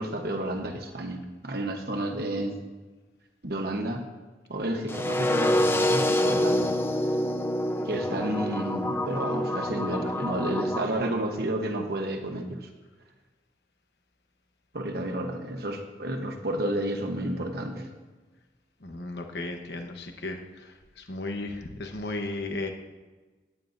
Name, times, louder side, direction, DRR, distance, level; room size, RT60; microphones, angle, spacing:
voice 1, 0.0-2.6 3.4-4.1 4.5-6.7 7.8-12.7 14.7-17.9, right 1 dB, 60° right, 3 dB, 1.1 m, -31 dB
sound 1, 4.9-10.9, left 1 dB, 15° left, 0.5 m, -26 dB
voice 2, 18.8-22.7, left 2 dB, 70° left, 4 dB, 1.1 m, -35 dB
18.0 x 9.2 x 2.6 m, 1.3 s
head